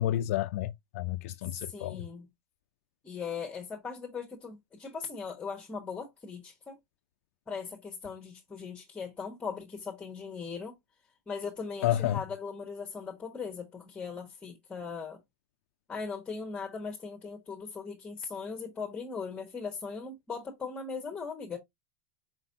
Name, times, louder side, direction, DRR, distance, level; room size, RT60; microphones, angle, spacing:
voice 1, 0.0-2.0 11.8-12.2, left 13 dB, 60° left, 0.3 m, -30 dB
voice 2, 1.5-2.3 3.0-6.8 7.5-10.7 11.3-15.2 15.9-21.6, left 5 dB, 15° left, 1.1 m, -39 dB
4.5 x 3.9 x 2.6 m
hypercardioid pair, 130°, 9 cm